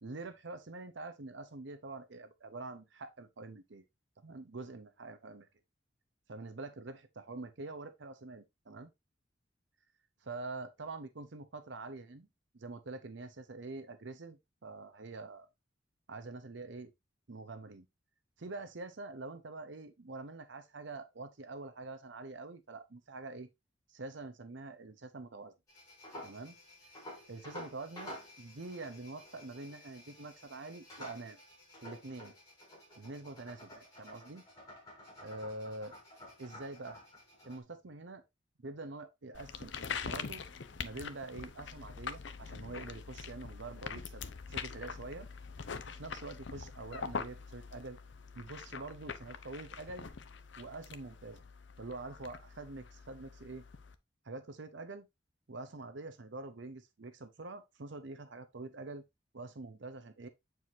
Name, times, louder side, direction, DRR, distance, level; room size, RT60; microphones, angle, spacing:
voice 1, 0.0-3.8 4.2-5.5 6.3-8.9 10.2-12.3 12.5-15.5 16.1-16.9 17.3-17.9 18.4-23.5 23.9-25.5 26.2-26.6 27.3-31.4 31.8-32.3 32.9-34.4 35.2-35.9 36.4-37.0 37.5-38.2 38.6-40.4 40.8-45.3 45.9-48.0 48.3-50.1 50.6-51.4 51.8-53.6 54.2-55.1 55.5-59.0 59.3-60.3, right 3 dB, 70° right, 0.8 m, -45 dB
sound 1, 25.7-37.6, left 1 dB, 20° left, 3.5 m, -51 dB
sound 2, 39.3-54.0, left 5 dB, 65° left, 0.6 m, -44 dB
7.7 x 4.7 x 2.6 m
head